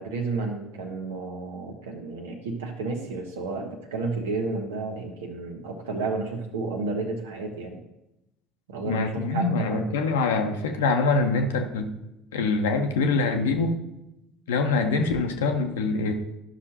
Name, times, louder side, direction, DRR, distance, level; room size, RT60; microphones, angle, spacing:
voice 1, 0.0-7.8 8.7-9.9, right 3 dB, 70° right, 3 dB, 1.2 m, -31 dB
voice 2, 8.9-11.9 12.3-13.7 14.5-16.1, left 3 dB, 70° left, 5 dB, 0.8 m, -24 dB
12.5 x 6.0 x 2.9 m, 0.91 s
figure-of-eight pair, 60°, 0 cm